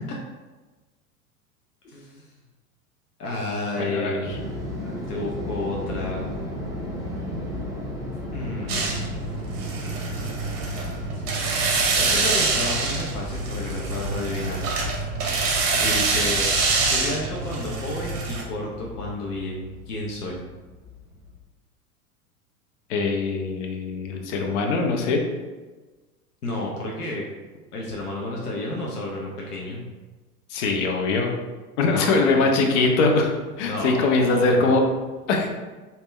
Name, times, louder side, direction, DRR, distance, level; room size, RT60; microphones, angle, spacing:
voice 1, 1.8-2.3 3.2-4.4 4.8-6.3 8.3-9.0 11.1-11.2 12.0-14.7 15.8-16.5 16.8-20.4 26.4-27.3 27.7-29.9 31.8-32.4 33.6-34.7, left 1 dB, 80° left, -3 dB, 0.8 m, -31 dB
voice 2, 3.8-4.2 22.9-25.2 30.5-31.3 31.8-34.8 35.3-35.5, left 3 dB, 50° left, 2 dB, 0.8 m, -22 dB
sound 1, 4.2-21.4, left 2 dB, 10° right, 0.6 m, -35 dB
sound 2, 8.7-18.4, right 4 dB, 45° right, 0.9 m, -25 dB
3.4 x 2.8 x 3.1 m, 1.3 s
figure-of-eight pair, 90°, 45 cm